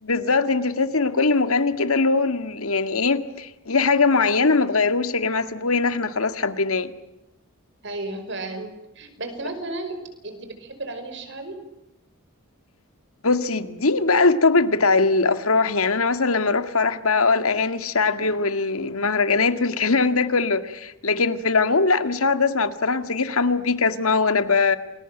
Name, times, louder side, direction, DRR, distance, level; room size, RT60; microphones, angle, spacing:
voice 1, 0.0-6.9 13.2-24.8, left 4 dB, 85° left, 10 dB, 1.9 m, -21 dB
voice 2, 7.8-11.6, right 2 dB, 55° right, 8 dB, 5.3 m, -34 dB
29.0 x 21.5 x 9.1 m, 0.90 s
head